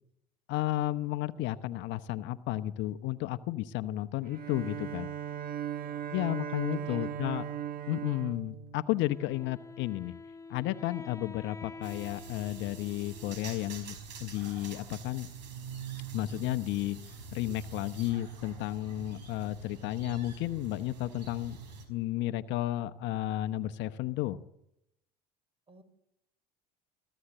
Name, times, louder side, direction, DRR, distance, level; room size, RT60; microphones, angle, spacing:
voice 1, 0.5-5.1 6.1-7.4 7.9-10.1 10.5-15.3 16.1-17.0 17.3-21.6 21.9-24.4, left 15 dB, 60° left, 12 dB, 1.0 m, -33 dB
Bowed string instrument, 4.2-9.5, right 10 dB, 45° right, 1.6 m, -38 dB
voice 2, 5.8-6.1 6.5-7.2 18.9-19.2 25.7-25.8, right 1 dB, 25° right, 13 dB, 4.3 m, -56 dB
Wind instrument woodwind instrument, 9.0-13.8, left 4 dB, 15° left, 0.9 m, -48 dB
sound 1, 11.8-21.8, right 5 dB, 80° right, 5.0 m, -45 dB
24.0 x 14.5 x 7.9 m, 0.84 s
hypercardioid pair, 75°, 21 cm